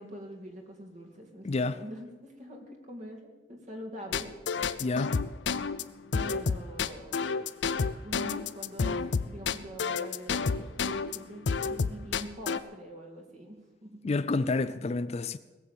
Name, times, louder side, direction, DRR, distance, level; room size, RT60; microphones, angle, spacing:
voice 1, 0.0-4.3 6.1-7.4 8.0-13.9 14.4-14.5, equal, 40° right, 2.5 m, -44 dB
voice 2, 1.4-1.8 4.8-5.2 14.0-15.4, left 3 dB, 35° left, 0.4 m, -29 dB
sound 1, 4.1-11.2 11.5-12.6, left 5 dB, 80° left, 0.6 m, -29 dB
18.5 x 7.7 x 8.4 m
head